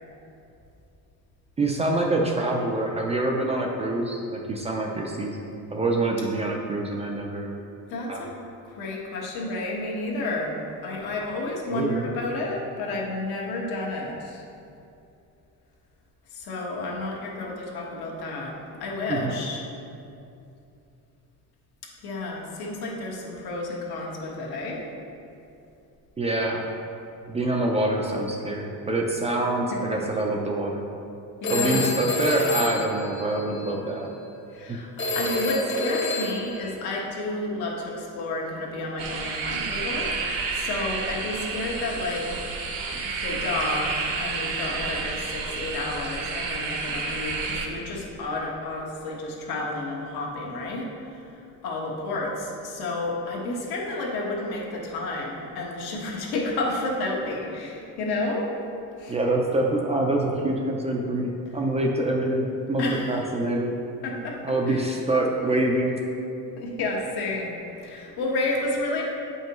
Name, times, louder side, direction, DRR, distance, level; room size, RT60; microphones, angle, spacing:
voice 1, 1.6-5.4 5.7-7.5 8.1-8.2 11.7-12.1 19.1-19.3 26.2-26.7 27.3-30.8 31.5-34.1 34.7-34.8 59.1-62.8 63.1-63.7 64.4-65.9, right 2 dB, 20° right, 0 dB, 0.3 m, -25 dB
voice 2, 7.9-8.3 8.6-10.6 10.8-14.4 16.3-19.6 22.0-24.9 29.7-30.0 31.4-31.9 34.5-34.9 35.1-42.5 42.9-58.5 59.0-59.2 62.8-63.3 64.0-64.8 66.6-69.1, left 2 dB, 80° left, -2 dB, 1.4 m, -31 dB
Telephone, 31.4-33.8 35.0-36.7, left 2 dB, 35° left, 0.8 m, -28 dB
sound 1, 39.0-47.7, right 4 dB, 65° right, 0.9 m, -30 dB
8.4 x 5.3 x 3.0 m, 2.7 s
cardioid pair, 165°, 37 cm